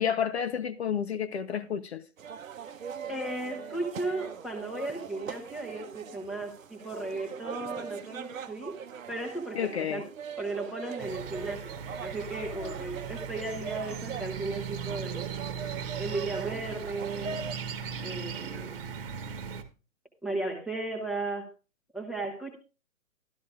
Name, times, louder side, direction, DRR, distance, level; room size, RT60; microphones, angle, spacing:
voice 1, 0.0-2.0 9.5-10.0 12.6-12.7, left 8 dB, 55° left, 0.5 m, -30 dB
sound 1, 2.2-17.5, right 7 dB, 70° right, 0.8 m, -41 dB
voice 2, 3.1-8.8 9.1-10.0 10.4-15.3 16.0-17.3 18.0-18.7 20.2-21.5 21.9-22.6, right 2 dB, ahead, 0.7 m, -35 dB
sound 2, 11.0-19.6, right 7 dB, 40° right, 1.1 m, -38 dB
12.5 x 12.0 x 2.4 m
figure-of-eight pair, 125°, 42 cm